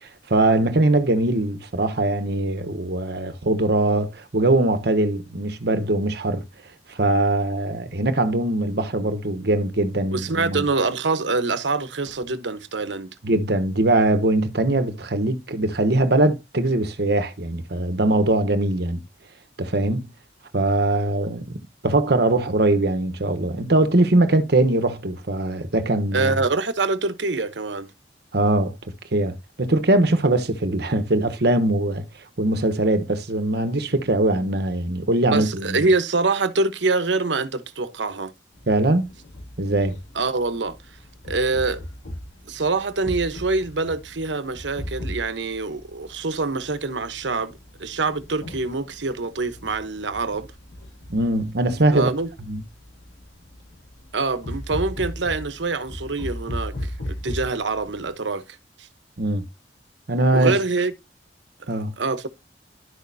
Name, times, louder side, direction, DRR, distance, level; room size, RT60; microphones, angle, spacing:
voice 1, 0.3-6.4 6.9-10.6 13.2-19.0 19.6-20.1 20.5-26.4 28.3-28.8 29.1-32.0 32.4-35.9 38.7-39.1 39.6-40.0 51.1-52.1 52.5-52.6 59.2-59.4 60.1-60.6 61.7-61.9, right 2 dB, 60° right, 1.1 m, -21 dB
voice 2, 10.1-13.1 26.1-27.9 35.3-38.3 40.1-40.8 41.3-41.8 42.5-50.5 51.9-52.3 54.1-58.4 58.8-58.9 60.3-60.9 62.0-62.3, right 3 dB, 85° right, 1.0 m, -25 dB
sound 1, 38.5-58.1, left 1 dB, 80° left, 2.5 m, -37 dB
11.5 x 6.4 x 2.7 m
head